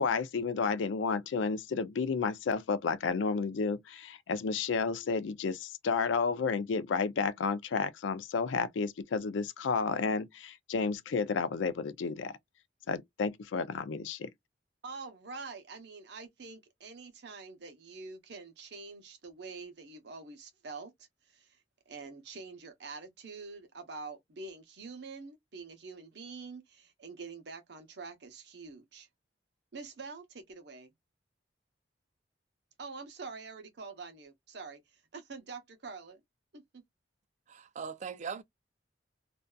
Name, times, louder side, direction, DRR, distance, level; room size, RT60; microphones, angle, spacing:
voice 1, 0.0-12.3 12.9-14.3, left 5 dB, 85° left, 0.4 m, -31 dB
voice 2, 14.8-21.6 21.9-29.1 29.7-30.9 32.8-36.2 36.5-36.8, right 4 dB, 65° right, 0.8 m, -46 dB
voice 3, 37.5-38.4, right 6 dB, 40° right, 0.3 m, -40 dB
2.6 x 2.3 x 2.2 m
head